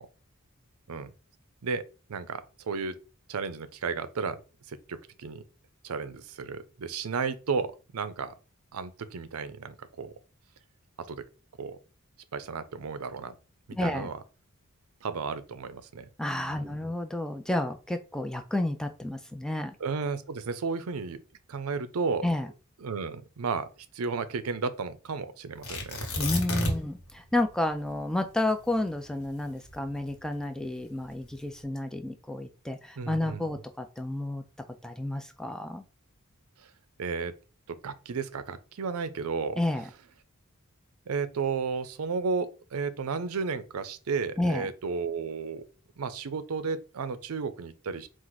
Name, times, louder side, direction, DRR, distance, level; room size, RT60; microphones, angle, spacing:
voice 1, 2.1-2.9 3.3-4.4 4.7-5.4 5.8-8.3 8.7-10.1 11.0-11.2 11.6-11.8 12.3-13.4 13.7-14.2 15.0-16.1 16.5-16.9 19.8-21.2 21.5-22.3 22.8-23.7 23.9-26.0 26.5-26.7 33.0-33.6 36.6-36.7 37.0-37.3 37.7-39.6 41.1-45.6 46.0-48.1, right 5 dB, 85° right, 0.5 m, -33 dB
voice 2, 13.8-14.1 16.2-19.8 22.2-22.5 26.2-34.4 34.8-35.8 39.6-39.8 44.4-44.7, left 1 dB, 5° left, 0.3 m, -31 dB
Tearing, 25.6-27.0 27.3-27.4 27.9-30.3 31.0-31.5, left 1 dB, 65° left, 1.2 m, -32 dB
4.5 x 2.4 x 3.9 m
head